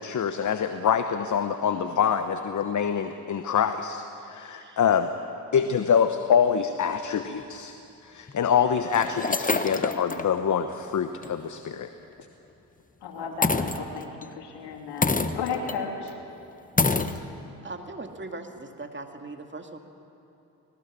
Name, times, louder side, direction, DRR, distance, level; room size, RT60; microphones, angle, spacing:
voice 1, 0.0-5.1 5.5-7.7 8.0-11.9, left 7 dB, 45° left, 9 dB, 1.1 m, -25 dB
voice 2, 4.5-4.8 17.6-19.8, right 2 dB, 25° right, 4 dB, 2.3 m, -39 dB
sound 1, 7.4-7.5 8.3-8.4 8.9-10.3 10.7-10.8 11.2-11.4 13.4-14.2 15.0-15.8 16.1-16.2 16.8-17.2, left 3 dB, 20° left, 1.1 m, -26 dB
voice 3, 13.0-16.2, left 5 dB, 70° left, 1 dB, 3.1 m, -34 dB
20.0 x 18.5 x 8.6 m, 2.8 s
hypercardioid pair, 45°, 43 cm